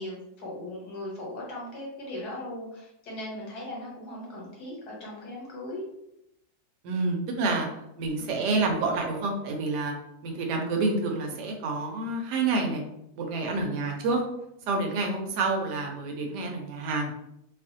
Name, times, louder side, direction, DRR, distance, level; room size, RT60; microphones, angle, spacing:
voice 1, 0.0-5.9, left 1 dB, 70° left, -3 dB, 1.4 m, -38 dB
voice 2, 6.8-7.7 8.0-9.9 10.2-12.8 13.2-14.2 14.7-17.1, right 3 dB, 80° right, 2 dB, 1.2 m, -28 dB
2.9 x 2.4 x 2.6 m, 0.81 s
omnidirectional pair, 1.8 m